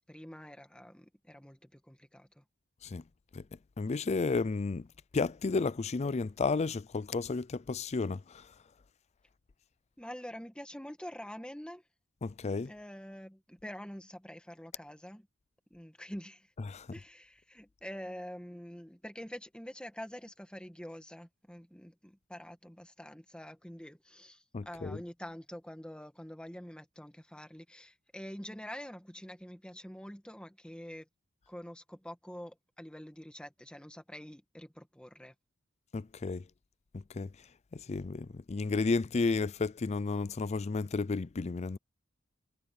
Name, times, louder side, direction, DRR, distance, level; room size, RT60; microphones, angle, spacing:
voice 1, 0.1-2.4 10.0-11.8 12.6-15.3 15.7-16.5 16.9-31.1 31.5-35.3, equal, 5° left, 2.0 m, -46 dB
voice 2, 3.8-4.9 5.1-8.4 12.2-12.7 16.7-16.9 24.5-25.0 35.9-36.4 36.9-37.3 37.7-41.8, left 4 dB, 35° left, 0.4 m, -32 dB
head